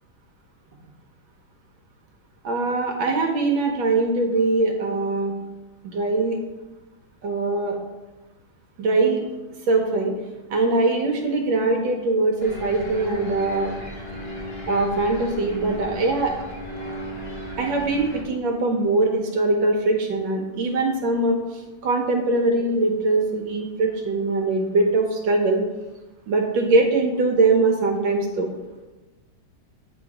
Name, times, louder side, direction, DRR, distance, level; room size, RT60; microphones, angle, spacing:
voice 1, 2.4-5.3 5.9-6.4 7.2-7.8 8.8-9.2 9.7-10.1 10.5-13.7 14.6-16.3 17.6-25.6 26.3-28.5, right 2 dB, 75° right, 2 dB, 1.4 m, -22 dB
sound 1, 12.4-18.2, equal, 50° left, 0.8 m, -35 dB
8.6 x 3.1 x 4.7 m, 1.1 s
omnidirectional pair, 2.1 m